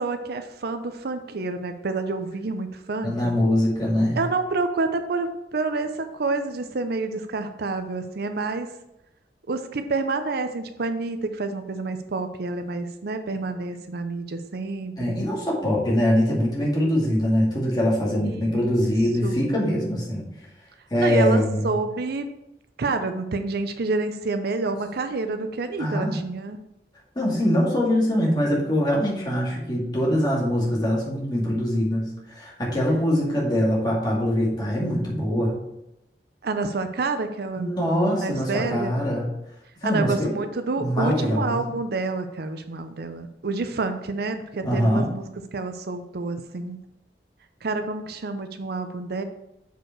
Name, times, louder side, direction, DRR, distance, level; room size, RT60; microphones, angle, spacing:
voice 1, 0.0-3.3 4.2-8.7 9.5-15.2 18.2-18.6 19.2-19.4 21.0-22.3 22.8-26.6 36.4-37.7 38.2-39.0 39.8-46.8 47.6-49.2, right 3 dB, 60° right, 8 dB, 0.6 m, -28 dB
voice 2, 3.0-4.2 15.0-20.3 20.9-21.7 25.8-26.2 27.2-35.6 37.6-39.3 39.8-40.3 40.8-41.7 44.6-45.1, equal, 25° left, -4 dB, 2.2 m, -23 dB
6.6 x 5.1 x 4.5 m, 0.85 s
head